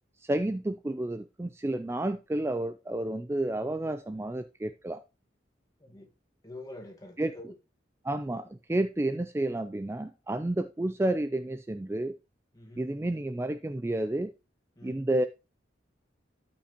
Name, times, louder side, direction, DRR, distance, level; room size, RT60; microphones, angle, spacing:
voice 1, 0.2-5.0 7.2-7.3 8.0-12.2 12.8-14.3 14.8-15.3, right 1 dB, 15° right, 0.3 m, -30 dB
voice 2, 5.8-6.1 6.4-7.5 12.5-12.9 14.8-15.0, left 1 dB, 20° left, 1.5 m, -46 dB
13.0 x 5.8 x 2.9 m
head